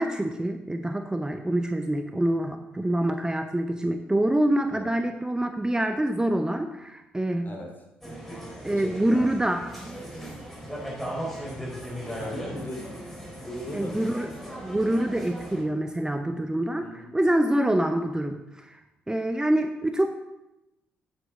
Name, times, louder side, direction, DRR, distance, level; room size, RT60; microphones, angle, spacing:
voice 1, 0.0-7.5 8.6-10.0 13.7-14.3 14.6-16.8 17.1-18.8 19.1-20.1, right 1 dB, 15° right, 7 dB, 0.7 m, -26 dB
sound 1, 8.0-15.6, equal, 5° left, 4.1 m, -38 dB
voice 2, 8.7-9.3 12.1-13.0 13.4-14.1 16.8-17.1, left 1 dB, 35° left, 2 dB, 2.9 m, -38 dB
9.3 x 9.2 x 3.8 m, 0.94 s
hypercardioid pair, 45°, 5 cm